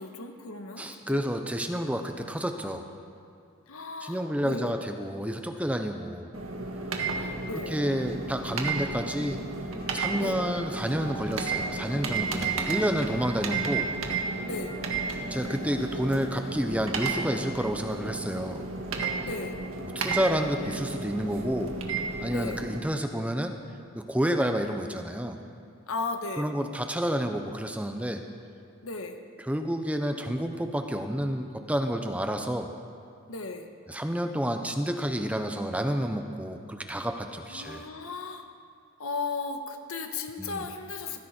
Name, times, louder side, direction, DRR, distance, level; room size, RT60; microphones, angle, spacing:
voice 1, 0.0-1.3 3.7-4.8 7.1-7.8 10.2-10.4 14.4-14.8 19.2-19.6 22.3-22.6 25.9-26.5 28.8-29.2 33.3-33.7 37.5-38.5 39.0-41.2, left 3 dB, 85° left, 5 dB, 1.4 m, -36 dB
voice 2, 0.8-2.9 4.0-6.3 7.7-9.4 9.9-13.9 15.3-18.7 19.9-21.7 22.2-23.5 23.9-25.4 26.4-28.2 29.5-32.7 33.9-37.8 40.4-40.6, equal, 5° right, 6 dB, 0.7 m, -29 dB
sound 1, 6.3-22.8, right 4 dB, 80° right, 1.7 m, -33 dB
sound 2, 9.4-10.3 10.5-18.6, right 1 dB, 30° left, 3.8 m, -48 dB
sound 3, 9.8-16.5, right 2 dB, 50° right, 2.3 m, -45 dB
19.5 x 15.0 x 4.4 m, 2.4 s
head